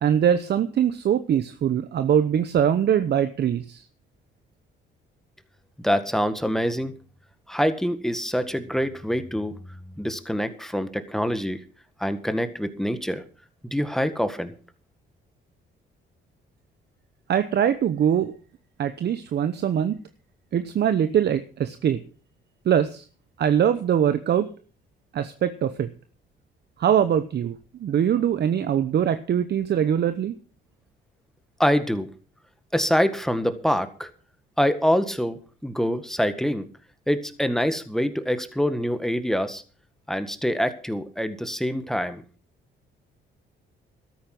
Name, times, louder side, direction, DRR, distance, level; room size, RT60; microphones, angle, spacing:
voice 1, 0.0-3.8 17.3-18.3 18.8-20.0 20.5-22.0 22.7-23.0 23.4-24.5 25.1-25.9 26.8-30.3, right 9 dB, 55° right, 11 dB, 0.9 m, -22 dB
voice 2, 5.8-6.9 7.5-9.5 10.0-11.6 12.0-13.2 13.7-14.5 31.6-32.1 32.7-34.1 34.6-36.7 37.1-39.6 40.1-42.2, equal, ahead, 10 dB, 1.7 m, -25 dB
13.5 x 10.5 x 6.0 m, 0.39 s
cardioid pair, 90°, 20 cm